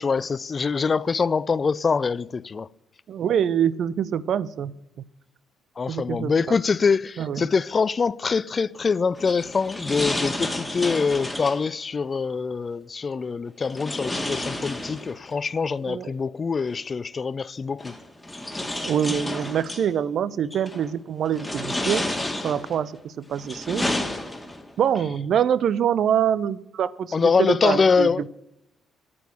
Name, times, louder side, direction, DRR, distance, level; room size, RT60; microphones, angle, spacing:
voice 1, 0.0-2.7 5.8-18.0 27.1-28.3, left 5 dB, 35° left, 0.4 m, -24 dB
voice 2, 3.1-4.7 5.9-6.6 7.2-7.4 15.9-16.1 18.8-22.1 22.4-23.8 24.8-28.3, right 9 dB, 55° right, 0.5 m, -25 dB
sound 1, 9.1-11.7 13.7-15.4 16.7-16.8 17.8-19.9 20.5-20.9 21.3-22.8 23.3-24.7, left 1 dB, 10° left, 2.0 m, -30 dB
9.1 x 8.7 x 9.7 m
figure-of-eight pair, 45°, 0 cm